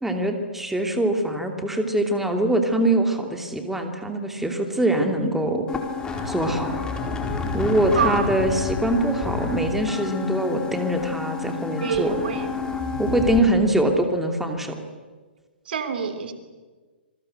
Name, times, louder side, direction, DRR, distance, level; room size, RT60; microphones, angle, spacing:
voice 1, 0.0-5.7 6.3-6.8 7.5-12.1 13.0-14.8, right 1 dB, 5° right, 4 dB, 2.8 m, -23 dB
sound 1, 5.7-13.4, left 4 dB, 15° left, 4.7 m, -29 dB
voice 2, 7.9-8.3 11.8-12.6 15.7-16.3, right 7 dB, 60° right, 9 dB, 3.2 m, -27 dB
27.5 x 24.0 x 8.1 m, 1.4 s
figure-of-eight pair, 125°, 6 cm